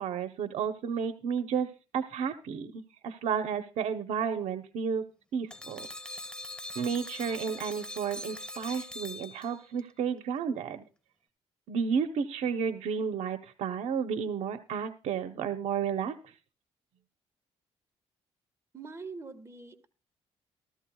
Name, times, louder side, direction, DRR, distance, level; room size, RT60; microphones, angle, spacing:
voice 1, 0.0-5.0 5.3-5.9 6.8-10.8 11.7-16.1, right 6 dB, 75° right, 8 dB, 0.9 m, -32 dB
sound 1, 5.5-9.8, left 1 dB, 10° left, 1.5 m, -42 dB
voice 2, 18.7-19.9, right 4 dB, 25° right, 7 dB, 1.8 m, -43 dB
15.5 x 13.5 x 2.3 m, 0.32 s
cardioid pair, 95°, 11 cm